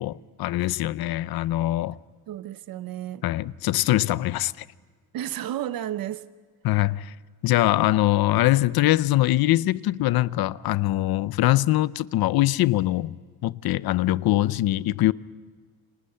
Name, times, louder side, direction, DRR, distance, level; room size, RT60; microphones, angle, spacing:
voice 1, 0.0-2.0 3.2-4.6 6.6-7.1 7.4-13.2 13.4-15.1, left 16 dB, 70° left, 0.7 m, -23 dB
voice 2, 2.3-3.2 5.1-6.3, right 12 dB, 65° right, 0.8 m, -32 dB
29.5 x 25.5 x 5.6 m
cardioid pair, 180°, 38 cm